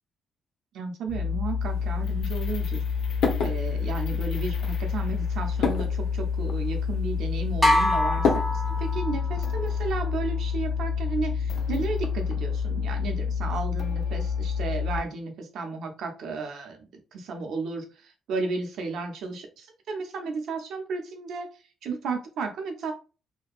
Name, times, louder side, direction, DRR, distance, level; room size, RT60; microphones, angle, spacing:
voice 1, 0.7-2.8 3.4-8.4 8.8-16.8 17.1-21.5 21.8-22.9, right 4 dB, 75° right, 3 dB, 0.6 m, -33 dB
sound 1, 1.1-15.0, left 6 dB, 60° left, 0.4 m, -28 dB
sound 2, 1.6-9.0, left 5 dB, 80° left, 0.8 m, -33 dB
sound 3, 7.6-9.4, left 1 dB, ahead, 0.6 m, -24 dB
2.6 x 2.2 x 2.4 m, 0.34 s
cardioid pair, 90°, 0 cm